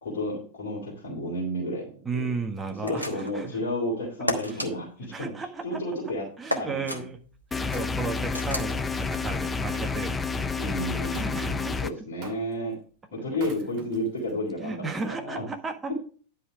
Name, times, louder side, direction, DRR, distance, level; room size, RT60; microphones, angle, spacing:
voice 1, 0.0-2.2 2.8-5.3 5.6-6.2 6.6-7.0 10.6-12.8 13.1-15.4 15.9-16.0, left 1 dB, 65° left, -3 dB, 3.3 m, -32 dB
voice 2, 2.0-3.6 4.5-4.6 5.1-5.8 6.4-7.2 7.5-11.7 14.6-15.9, right 4 dB, 15° right, 4 dB, 1.5 m, -34 dB
sound 1, 2.8-3.4 4.3-4.7 6.5-7.0 8.3-8.7, left 1 dB, 85° left, 1.2 m, -31 dB
Wood, 7.2-10.1 11.1-11.4 12.2-12.7 13.3-14.3 15.0-15.1, right 6 dB, 40° right, 2.1 m, -45 dB
sound 2, 7.5-11.9, left 4 dB, 15° left, 0.6 m, -29 dB
10.0 x 5.5 x 4.9 m, 0.41 s
figure-of-eight pair, 90°, 0 cm